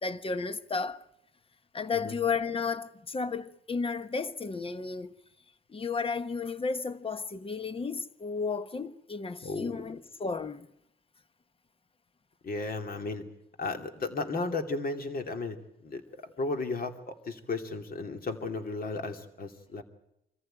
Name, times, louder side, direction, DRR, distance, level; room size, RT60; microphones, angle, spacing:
voice 1, 0.0-1.0 1.7-5.1 5.7-10.7, left 5 dB, 30° left, 1.2 m, -33 dB
voice 2, 9.4-9.9 12.4-13.2 13.6-15.6 15.8-19.8, left 3 dB, 45° left, 2.7 m, -34 dB
25.5 x 14.5 x 9.0 m
cardioid pair, 90°, 20 cm